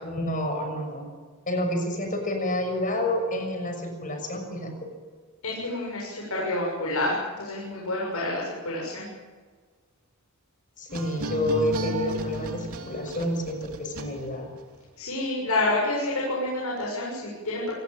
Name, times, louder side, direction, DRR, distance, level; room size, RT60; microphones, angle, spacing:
voice 1, 0.0-1.1 1.5-4.7 10.8-14.5, left 1 dB, 35° left, 5 dB, 6.3 m, -29 dB
voice 2, 5.4-9.1 15.0-17.7, left 2 dB, 80° left, -3 dB, 7.4 m, -28 dB
sound 1, 10.9-14.6, equal, 80° right, 2.9 m, -34 dB
27.5 x 19.5 x 7.8 m, 1.5 s
head